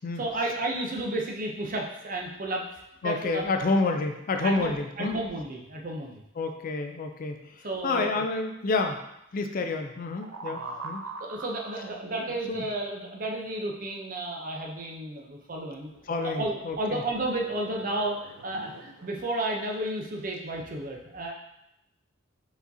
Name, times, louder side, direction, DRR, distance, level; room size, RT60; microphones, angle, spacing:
voice 1, 0.2-2.7 3.0-3.5 4.4-6.2 7.6-8.2 10.5-10.9 11.2-15.9 16.2-21.3, right 1 dB, 40° right, 1 dB, 0.6 m, -32 dB
voice 2, 3.0-5.2 6.4-9.0 9.3-11.0 12.5-12.6 16.1-17.0, left 3 dB, 45° left, 5 dB, 0.4 m, -29 dB
sound 1, 10.2-12.9 15.7-19.6 20.2-20.4, right 3 dB, 90° right, 0.5 m, -43 dB
4.8 x 4.0 x 2.7 m, 0.84 s
head